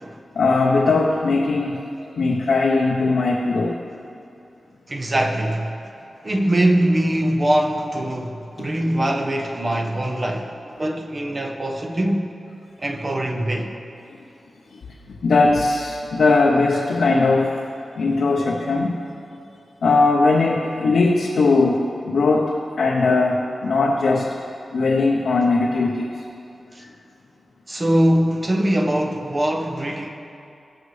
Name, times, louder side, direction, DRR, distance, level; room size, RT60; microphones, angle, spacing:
voice 1, 0.3-1.8 2.2-3.8 14.7-14.8 15.2-17.6 18.0-19.0 19.8-24.3 24.7-26.1, left 3 dB, 75° left, 0.7 m, -19 dB
voice 2, 4.9-5.8 6.2-12.3 12.8-13.8 26.7-26.8 27.7-30.1, right 1 dB, 25° right, 0.8 m, -22 dB
18.5 x 6.6 x 3.2 m
wide cardioid pair, 170°, 0 cm